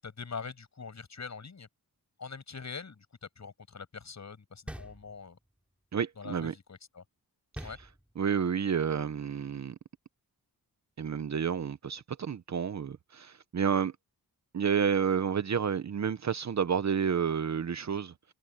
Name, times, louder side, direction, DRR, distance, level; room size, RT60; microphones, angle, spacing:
voice 1, 0.0-1.7 2.2-5.4 6.2-7.0 7.6-7.8, left 5 dB, 45° left, 7.8 m, -43 dB
sound 1, 4.7-5.6 7.5-8.5, equal, 5° right, 3.4 m, -45 dB
voice 2, 5.9-6.5 8.2-9.8 11.0-13.9 14.5-18.1, right 7 dB, 45° right, 0.8 m, -30 dB
open air
wide cardioid pair, 145°, 37 cm